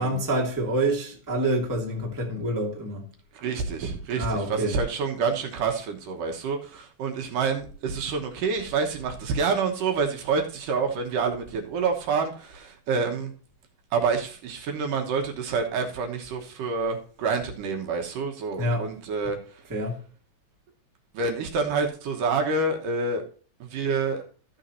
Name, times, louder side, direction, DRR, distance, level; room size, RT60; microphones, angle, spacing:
voice 1, 0.0-3.1 4.1-4.8 18.6-18.9 19.2-19.3 19.7-20.0, right 1 dB, 5° right, 1.6 m, -27 dB
voice 2, 3.3-13.3 13.9-19.4 21.1-23.2 23.6-24.2, right 4 dB, 70° right, 2.6 m, -27 dB
14.0 x 7.2 x 2.7 m
omnidirectional pair, 4.2 m